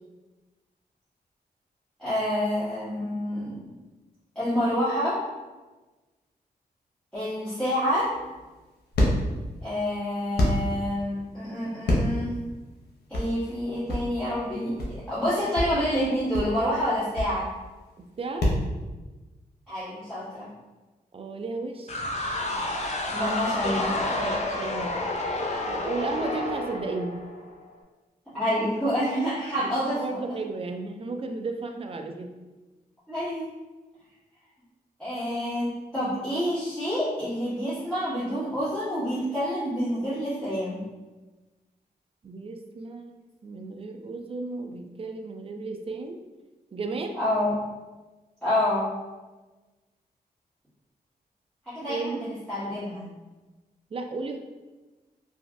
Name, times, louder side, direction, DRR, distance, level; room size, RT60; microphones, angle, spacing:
voice 1, 2.0-3.6 4.3-5.2 7.1-8.1 9.6-12.4 13.1-17.5 19.7-20.5 23.1-23.8 28.3-30.4 33.1-33.5 35.0-40.8 47.1-47.5 48.4-48.9 51.6-52.2 52.5-53.1, equal, 5° left, -16 dB, 1.4 m, -28 dB
sound 1, 7.8-18.7, left 1 dB, 85° left, 0.7 m, -28 dB
voice 2, 18.0-18.5 21.1-22.1 23.2-23.3 23.6-25.0 25.7-27.2 29.6-32.3 42.2-46.2 46.7-47.2 51.9-52.2 53.9-54.4, right 3 dB, 35° right, 5 dB, 0.3 m, -34 dB
sound 2, 21.9-27.6, left 2 dB, 45° left, 0.4 m, -30 dB
3.0 x 2.5 x 2.5 m, 1.2 s
cardioid pair, 65°, 17 cm